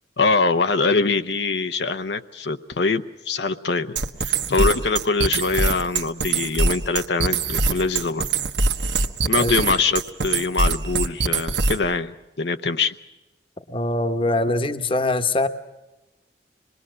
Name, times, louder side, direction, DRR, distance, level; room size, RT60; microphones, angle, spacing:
voice 1, 0.2-8.3 9.3-12.9, left 4 dB, 75° left, 7 dB, 0.8 m, -23 dB
sound 1, 4.0-11.9, right 4 dB, 85° right, 1.3 m, -23 dB
voice 2, 13.7-15.5, left 2 dB, 30° left, 8 dB, 1.1 m, -22 dB
26.0 x 21.0 x 6.3 m, 1.0 s
head